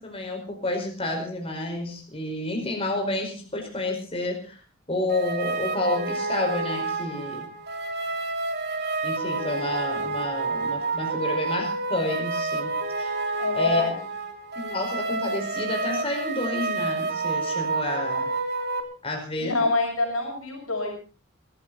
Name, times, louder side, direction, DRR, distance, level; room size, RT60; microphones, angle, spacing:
voice 1, 0.0-4.6 4.9-7.5 9.0-13.1 13.5-13.8 14.5-18.3 19.0-19.7, left 2 dB, 30° left, 2 dB, 5.1 m, -30 dB
sound 1, 5.1-18.8, right 3 dB, 55° right, 2.9 m, -29 dB
voice 2, 13.4-13.9 19.4-20.9, left 3 dB, 85° left, 1 dB, 6.5 m, -26 dB
22.5 x 15.0 x 4.1 m, 0.36 s
head